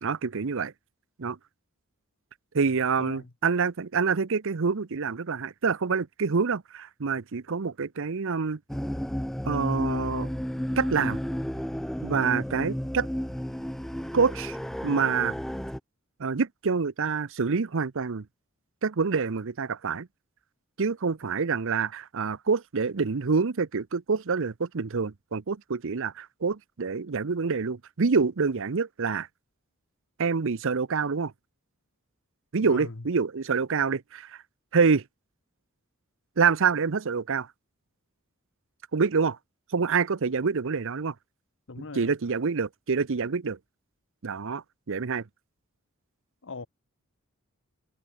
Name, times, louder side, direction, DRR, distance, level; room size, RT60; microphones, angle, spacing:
voice 1, 0.0-0.7 1.2-1.4 2.5-8.6 9.4-10.3 10.8-11.2 12.0-13.1 14.1-14.6 14.8-15.3 16.2-18.3 18.8-20.1 20.8-29.3 30.2-31.3 32.5-34.4 34.7-35.0 36.4-37.5 38.9-39.4 39.7-41.1 42.0-43.6 44.2-45.2, right 5 dB, 65° right, 0.7 m, -26 dB
voice 2, 3.0-3.3 32.6-33.1 41.7-42.1 46.4-46.7, left 3 dB, 60° left, 1.2 m, -39 dB
sound 1, 8.7-15.8, equal, ahead, 0.4 m, -32 dB
head